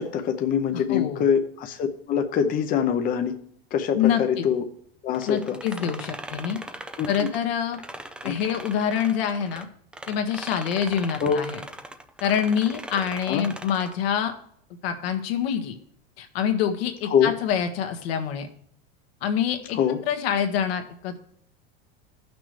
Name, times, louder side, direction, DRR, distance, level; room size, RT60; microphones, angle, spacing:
voice 1, 0.0-3.4 3.7-4.6 5.0-5.9 7.0-7.3 8.2-8.3 11.2-11.4 13.3-13.4 17.0-17.3 19.7-20.0, left 7 dB, 30° left, 5 dB, 0.7 m, -24 dB
voice 2, 0.7-1.2 3.9-4.5 5.2-6.6 7.1-7.8 8.2-9.7 10.1-11.6 12.2-14.3 14.8-15.8 16.2-18.5 19.2-19.8 20.1-21.2, left 8 dB, 75° left, 5 dB, 1.5 m, -26 dB
sound 1, 5.1-9.6 9.9-14.0, right 1 dB, 5° right, 0.3 m, -39 dB
15.0 x 6.0 x 3.2 m, 0.67 s
supercardioid pair, 140°, 31 cm